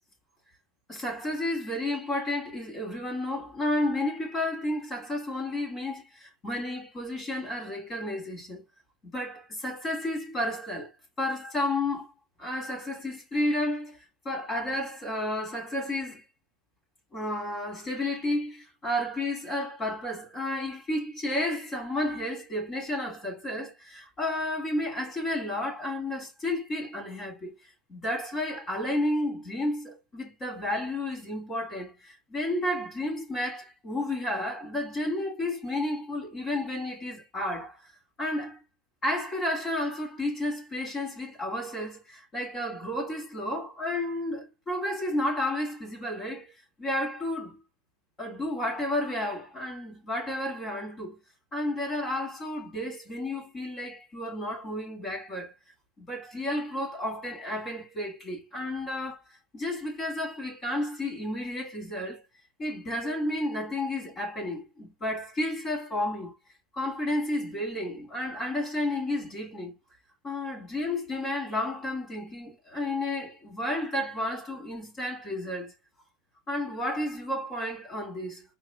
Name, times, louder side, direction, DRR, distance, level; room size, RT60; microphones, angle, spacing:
voice 1, 0.9-8.6 9.0-10.9 11.2-12.1 12.4-16.2 17.1-27.5 27.9-37.8 38.2-38.6 39.0-46.5 46.8-47.6 48.2-51.2 51.5-55.5 56.0-59.2 59.5-62.2 62.6-66.3 66.7-69.8 70.2-75.7 76.5-78.4, left 1 dB, 25° left, 3.0 m, -32 dB
4.8 x 4.5 x 2.3 m
supercardioid pair, 125°, 0 cm